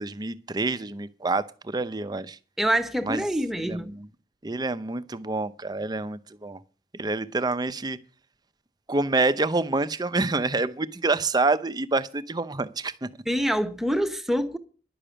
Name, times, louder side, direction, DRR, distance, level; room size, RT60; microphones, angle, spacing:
voice 1, 0.0-2.4 3.0-3.2 3.6-4.1 4.4-6.6 6.9-8.0 8.9-13.1, right 3 dB, 25° right, 0.6 m, -27 dB
voice 2, 2.6-3.9 13.3-14.6, equal, ahead, 0.9 m, -25 dB
11.0 x 6.8 x 8.9 m
head